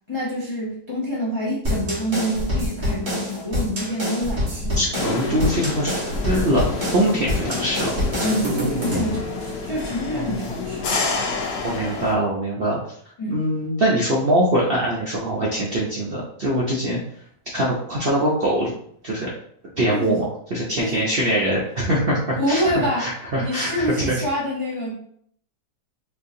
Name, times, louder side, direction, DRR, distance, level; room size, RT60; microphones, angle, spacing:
voice 1, 0.1-4.8 8.2-11.0 13.2-13.4 19.9-20.2 20.8-21.0 22.4-23.1 23.4-24.9, equal, 50° left, -4 dB, 0.3 m, -26 dB
sound 1, 1.6-9.2, left 1 dB, 35° right, 1.3 m, -26 dB
voice 2, 4.7-6.6 6.9-8.0 10.1-10.5 11.6-12.8 13.3-17.0 17.5-18.7 19.0-19.3 19.8-20.2 20.5-24.2, right 1 dB, 60° right, -4 dB, 0.6 m, -23 dB
sound 2, 4.9-12.1, left 4 dB, 85° left, 1.4 m, -29 dB
4.4 x 2.6 x 2.6 m, 0.64 s
omnidirectional pair, 1.8 m